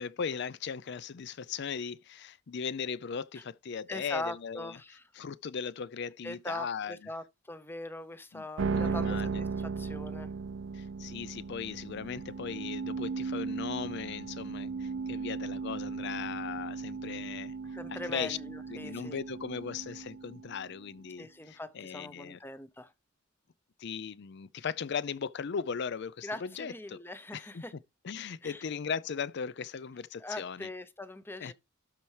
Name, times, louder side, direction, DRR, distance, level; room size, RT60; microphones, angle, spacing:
voice 1, 0.0-4.8 5.1-7.1 8.3-9.4 10.7-17.5 17.9-22.4 23.8-27.0 27.3-27.6 28.0-30.7 31.4-31.5, left 6 dB, 55° left, 0.5 m, -38 dB
voice 2, 3.9-5.0 6.2-10.3 17.7-19.2 21.2-22.9 26.2-27.7 28.4-28.6 30.2-31.5, left 1 dB, 10° left, 0.6 m, -41 dB
sound 1, 8.6-20.9, right 4 dB, 65° right, 0.5 m, -36 dB
12.5 x 4.4 x 3.3 m
head